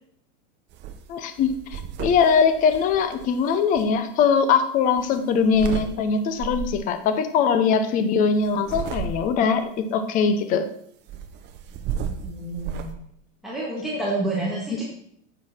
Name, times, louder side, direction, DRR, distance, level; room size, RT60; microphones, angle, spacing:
sound 1, 0.7-1.0 1.3-3.8 5.0-5.9 6.4-6.8 8.4-9.5 11.1-12.9, right 7 dB, 30° right, 0.8 m, -33 dB
voice 1, 1.1-10.7 14.7-14.8, left 6 dB, 20° left, 10 dB, 0.6 m, -21 dB
voice 2, 11.8-12.9 13.4-14.8, right 2 dB, ahead, -6 dB, 1.7 m, -29 dB
9.6 x 7.9 x 4.3 m, 0.69 s
supercardioid pair, 155°, 37 cm